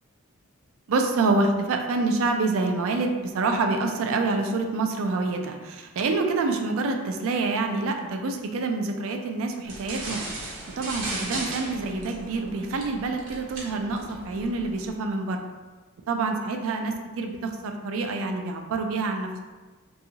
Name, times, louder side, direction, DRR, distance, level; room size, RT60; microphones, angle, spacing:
voice 1, 0.9-15.4 16.1-19.4, right 3 dB, 65° right, 4 dB, 0.4 m, -27 dB
sound 1, 9.6-14.9, right 2 dB, 85° right, 0.7 m, -37 dB
2.8 x 2.3 x 2.7 m, 1.3 s
head